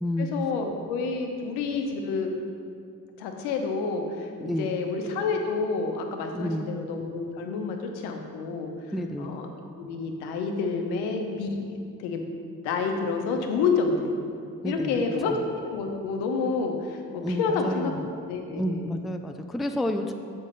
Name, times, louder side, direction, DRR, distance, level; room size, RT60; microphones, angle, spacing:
voice 1, 0.2-2.3 3.2-8.7 9.2-9.5 9.8-12.2 12.6-14.2 14.6-19.0, left 4 dB, 75° left, 3 dB, 0.9 m, -29 dB
voice 2, 4.4-4.7 6.3-6.7 8.9-9.3 14.6-15.0 15.2-15.4 17.2-18.1 18.6-20.1, left 1 dB, ahead, 6 dB, 0.3 m, -30 dB
7.2 x 5.4 x 4.0 m, 2.3 s
hypercardioid pair, 50°, 40 cm